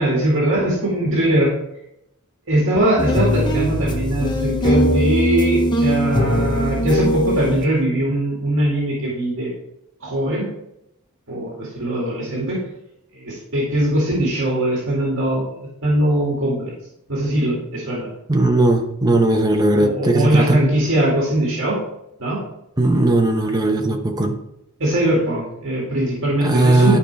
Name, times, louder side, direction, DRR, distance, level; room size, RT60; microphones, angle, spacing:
voice 1, 0.0-1.5 2.5-9.5 10.0-10.5 11.3-12.6 13.1-15.5 15.8-16.7 17.1-18.1 19.7-21.8 22.2-22.4 24.8-27.0, right 1 dB, 60° right, -4 dB, 2.2 m, -21 dB
sound 1, 3.0-7.7, equal, 20° left, 0.8 m, -20 dB
voice 2, 18.3-20.6 22.8-24.4 26.4-27.0, right 2 dB, 20° right, 3 dB, 0.9 m, -17 dB
11.5 x 4.9 x 3.4 m, 0.83 s
head